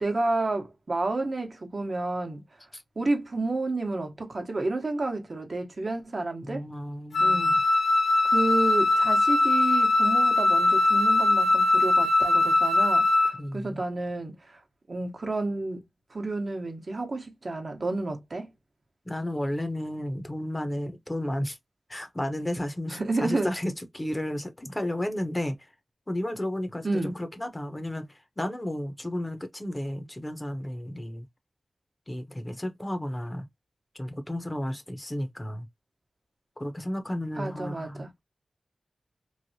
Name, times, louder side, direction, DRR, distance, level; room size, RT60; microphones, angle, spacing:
voice 1, 0.0-2.4 3.0-6.6 7.2-7.6 8.2-14.6 14.9-15.8 16.1-18.5 22.9-23.5 26.8-27.2 37.4-38.1, right 2 dB, 60° right, 0.9 m, -30 dB
voice 2, 6.4-7.6 13.3-13.8 19.1-21.6 21.9-25.6 26.1-28.1 28.4-31.3 32.1-33.4 33.9-35.7 36.6-38.2, left 1 dB, 25° left, 0.7 m, -33 dB
Wind instrument woodwind instrument, 7.1-13.4, left 2 dB, 85° left, 0.4 m, -21 dB
3.2 x 2.1 x 2.7 m
cardioid pair, 45°, 0 cm